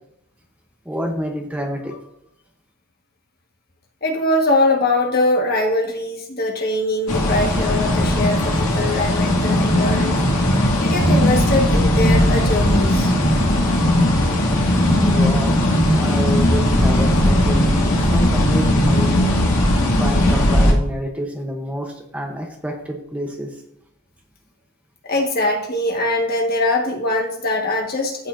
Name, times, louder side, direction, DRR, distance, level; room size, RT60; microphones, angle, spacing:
voice 1, 0.9-1.9 15.0-15.6 15.9-17.6 17.9-19.3 20.0-23.6, equal, 5° right, 2 dB, 0.8 m, -28 dB
voice 2, 4.0-10.1 10.8-13.1 25.0-28.3, left 2 dB, 45° left, 1 dB, 1.5 m, -22 dB
sound 1, 7.1-20.7, left 1 dB, 85° left, 2.1 m, -17 dB
15.0 x 5.6 x 2.6 m, 0.74 s
head